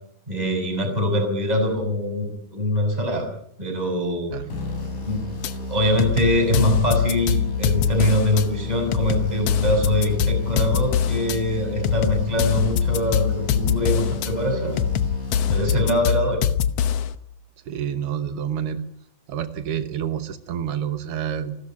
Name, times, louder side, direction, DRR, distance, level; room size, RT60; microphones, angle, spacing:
voice 1, 0.3-3.3 3.6-4.3 5.0-5.2 5.7-14.8 15.5-16.4, left 1 dB, 10° right, 5 dB, 6.0 m, -23 dB
sound 1, 4.5-16.2, left 3 dB, 65° left, 8.6 m, -32 dB
sound 2, 5.4-5.5 6.0-8.4 8.9-11.4 11.8-14.3 14.8-17.1, left 8 dB, 85° left, 1.4 m, -23 dB
voice 2, 17.6-18.8 19.3-21.6, right 9 dB, 90° right, 10 dB, 1.2 m, -28 dB
29.5 x 13.5 x 8.7 m, 0.68 s
omnidirectional pair, 4.3 m